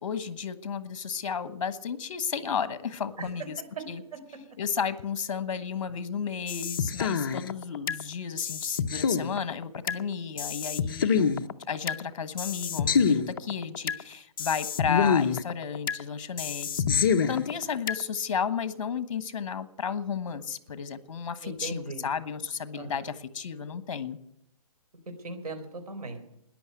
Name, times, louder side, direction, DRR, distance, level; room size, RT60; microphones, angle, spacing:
voice 1, 0.0-3.6 3.9-4.0 4.6-11.4 11.7-24.2, left 6 dB, 55° left, 14 dB, 1.4 m, -33 dB
sound 1, 6.5-8.0 8.4-10.0 10.4-12.0 12.4-14.0 14.4-16.0 16.4-18.0, left 6 dB, 35° left, 0.6 m, -27 dB
voice 2, 21.4-22.1 22.7-23.0 25.2-26.2, right 2 dB, 75° right, 7 dB, 4.0 m, -38 dB
14.0 x 10.5 x 9.4 m, 0.77 s
hypercardioid pair, 175°, 20 cm